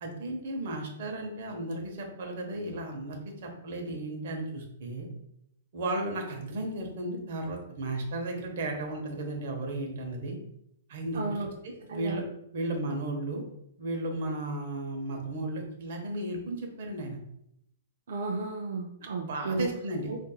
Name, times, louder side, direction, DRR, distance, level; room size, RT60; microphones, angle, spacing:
voice 1, 0.0-5.1 5.7-10.4 10.9-11.2 11.6-12.2 12.5-13.4 13.8-17.2 19.2-20.1, right 2 dB, 50° right, 1 dB, 0.8 m, -34 dB
voice 2, 11.1-11.5 11.9-12.2 18.1-19.7 20.1-20.2, right 3 dB, 65° right, 0 dB, 0.4 m, -33 dB
4.0 x 2.5 x 2.3 m, 0.76 s
hypercardioid pair, 175°, 0 cm